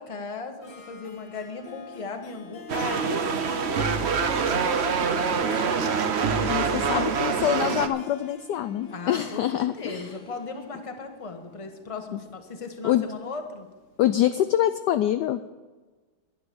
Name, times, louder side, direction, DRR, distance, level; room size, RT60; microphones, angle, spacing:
voice 1, 0.0-3.8 4.4-6.0 6.7-7.1 8.9-13.7, left 4 dB, 20° left, 5 dB, 1.0 m, -37 dB
Harp, 0.6-14.2, left 5 dB, 50° left, 1.2 m, -44 dB
sound 1, 2.7-7.9, right 6 dB, 55° right, 0.7 m, -25 dB
voice 2, 6.5-10.1 12.1-12.2 12.8-13.0 14.0-15.4, left 12 dB, 75° left, 10 dB, 1.0 m, -25 dB
11.0 x 10.5 x 6.9 m, 1.3 s
omnidirectional pair, 2.2 m